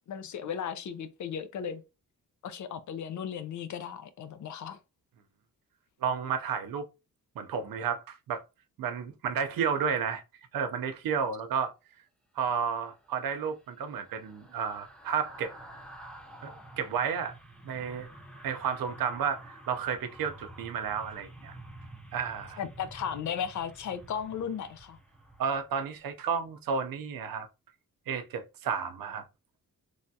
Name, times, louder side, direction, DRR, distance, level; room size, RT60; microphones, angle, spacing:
voice 1, 0.1-1.8 2.4-4.8 22.6-25.0, left 8 dB, 60° left, 0.4 m, -36 dB
voice 2, 6.0-6.9 7.4-8.4 8.8-10.2 10.5-11.7 12.4-15.5 16.4-17.4 17.6-18.1 18.4-21.5 22.1-22.6 25.4-27.5 28.1-29.2, right 6 dB, 85° right, 0.5 m, -32 dB
sound 1, 12.9-26.2 26.5-26.7, right 1 dB, 5° left, 0.5 m, -50 dB
3.2 x 2.3 x 2.6 m
wide cardioid pair, 175°, 34 cm